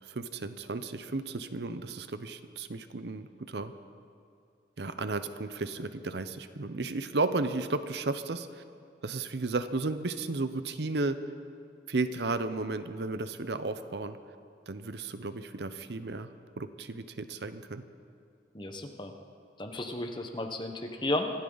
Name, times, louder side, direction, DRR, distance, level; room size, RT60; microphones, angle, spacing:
voice 1, 0.0-3.7 4.8-8.6 9.0-11.2 11.9-14.2 14.7-16.3 16.6-17.8, right 3 dB, 65° right, 11 dB, 0.7 m, -34 dB
voice 2, 18.5-19.1 19.6-21.3, left 1 dB, 25° left, 4 dB, 1.1 m, -33 dB
25.5 x 13.0 x 4.0 m, 2.4 s
head